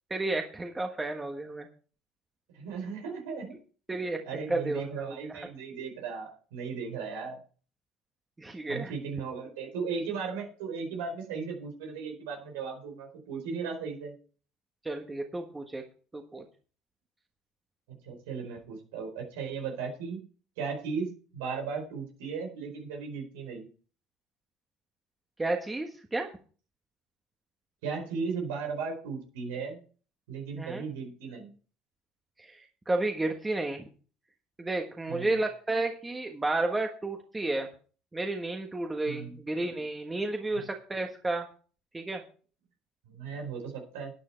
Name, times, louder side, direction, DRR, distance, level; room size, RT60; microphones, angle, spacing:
voice 1, 0.1-1.7 3.9-5.4 8.4-8.9 14.8-15.8 16.1-16.4 25.4-26.3 30.6-30.8 32.4-33.9 34.6-37.7 38.1-41.5 41.9-42.2, right 2 dB, 15° right, 3 dB, 1.4 m, -32 dB
voice 2, 2.5-3.5 4.2-7.4 8.7-14.1 17.9-20.2 20.6-23.7 27.8-29.8 30.3-31.5 35.1-35.4 39.1-39.3 40.5-40.6 43.1-44.1, right 5 dB, 90° right, 2 dB, 4.5 m, -36 dB
12.0 x 9.4 x 4.5 m, 0.39 s
supercardioid pair, 105°, 0 cm